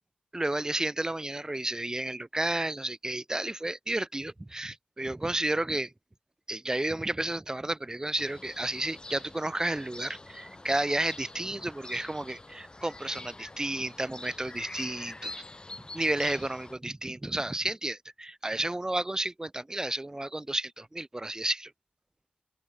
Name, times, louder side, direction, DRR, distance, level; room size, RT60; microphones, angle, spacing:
voice 1, 0.3-5.9 6.5-15.4 15.9-21.7, right 1 dB, 20° right, 2.5 m, -32 dB
sound 1, 8.1-16.7, left 2 dB, 25° left, 5.4 m, -45 dB
open air
wide cardioid pair, 85°, 3 cm